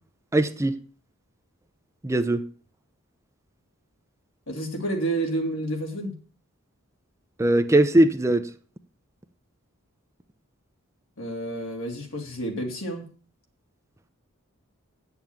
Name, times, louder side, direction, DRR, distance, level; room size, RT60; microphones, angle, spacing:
voice 1, 0.3-0.7 2.0-2.4 7.4-8.4, right 1 dB, 15° right, 0.6 m, -20 dB
voice 2, 4.5-6.1 11.2-13.1, right 1 dB, 70° left, 3.1 m, -30 dB
9.5 x 7.0 x 7.3 m
head